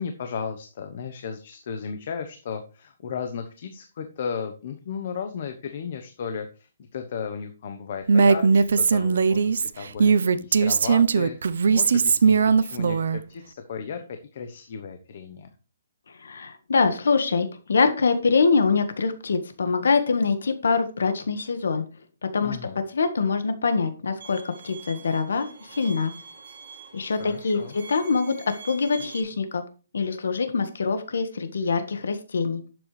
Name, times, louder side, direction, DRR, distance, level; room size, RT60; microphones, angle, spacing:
voice 1, 0.0-15.5 22.4-22.8 27.3-27.7, left 6 dB, 40° left, 7 dB, 1.0 m, -35 dB
Female speech woman speaking, 8.1-13.2, right 5 dB, 65° right, 0.7 m, -19 dB
voice 2, 16.2-21.8 22.3-22.6 22.9-26.1 26.9-29.6 29.9-32.6, left 4 dB, 80° left, 8 dB, 1.5 m, -24 dB
Bowed string instrument, 24.2-29.2, right 5 dB, 50° right, 2.7 m, -45 dB
11.5 x 7.9 x 3.3 m, 0.35 s
hypercardioid pair, 175°, 0 cm